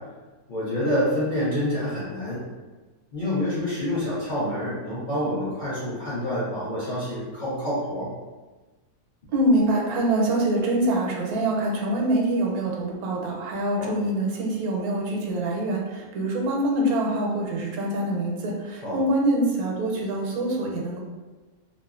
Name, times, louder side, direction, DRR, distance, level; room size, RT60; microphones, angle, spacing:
voice 1, 0.5-2.4 3.1-8.1 13.8-14.0 18.8-19.0, left 1 dB, 50° left, -10 dB, 0.6 m, -27 dB
voice 2, 9.3-21.0, right 1 dB, 85° right, -1 dB, 1.1 m, -25 dB
2.8 x 2.4 x 2.4 m, 1.2 s
omnidirectional pair, 1.5 m